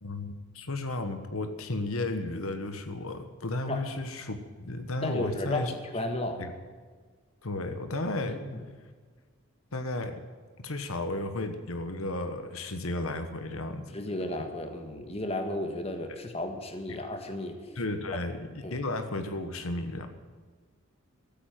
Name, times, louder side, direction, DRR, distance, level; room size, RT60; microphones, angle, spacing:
voice 1, 0.0-5.7 6.4-6.5 7.4-8.4 9.7-10.2 10.6-14.0 16.9-17.0 17.7-20.1, left 2 dB, 75° left, 8 dB, 1.3 m, -33 dB
voice 2, 5.0-6.5 8.3-8.6 13.9-17.6 18.6-18.8, left 1 dB, 30° left, 5 dB, 1.6 m, -34 dB
14.5 x 8.8 x 9.2 m, 1.5 s
head